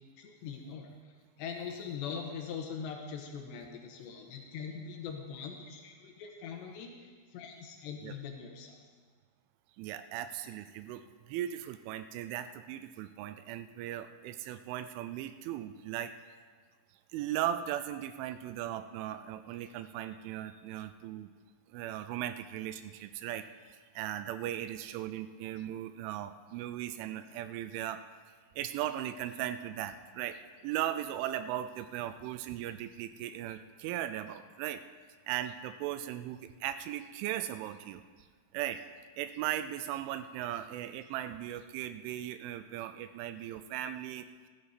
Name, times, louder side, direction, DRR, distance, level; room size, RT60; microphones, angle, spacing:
voice 1, 0.2-0.9 1.4-8.8, left 6 dB, 75° left, 2 dB, 2.9 m, -42 dB
voice 2, 9.8-16.1 17.1-21.3 21.7-28.0 28.6-34.8 35.3-38.0 38.5-38.8 39.2-44.3, right 12 dB, 85° right, 11 dB, 2.9 m, -38 dB
15.0 x 12.0 x 4.1 m, 1.5 s
omnidirectional pair, 5.6 m